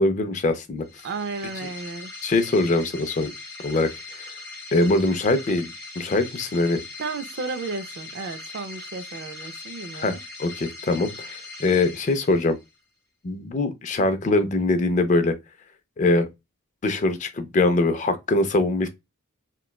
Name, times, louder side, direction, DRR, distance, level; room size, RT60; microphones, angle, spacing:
voice 1, 0.0-0.9 2.2-3.3 3.6-4.3 4.7-6.8 9.9-12.6 13.2-15.3 16.0-16.3 16.8-18.9, left 2 dB, 35° left, 0.3 m, -23 dB
sound 1, 0.8-12.7, left 3 dB, 10° left, 1.0 m, -40 dB
voice 2, 1.0-2.1 7.0-10.2, right 4 dB, 50° right, 0.3 m, -33 dB
3.0 x 2.1 x 2.3 m
head